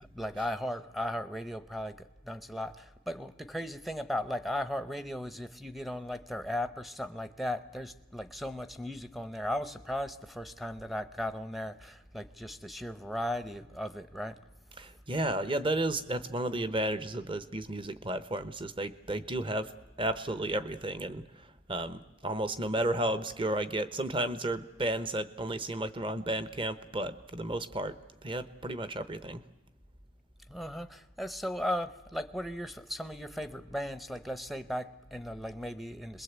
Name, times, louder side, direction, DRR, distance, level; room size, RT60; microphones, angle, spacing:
voice 1, 0.2-14.4 30.5-36.2, left 1 dB, ahead, 10 dB, 0.8 m, -36 dB
voice 2, 14.8-19.7 20.0-21.2 21.7-28.0 28.2-29.4, right 1 dB, 25° right, 12 dB, 0.9 m, -33 dB
27.0 x 21.5 x 8.2 m, 1.0 s
head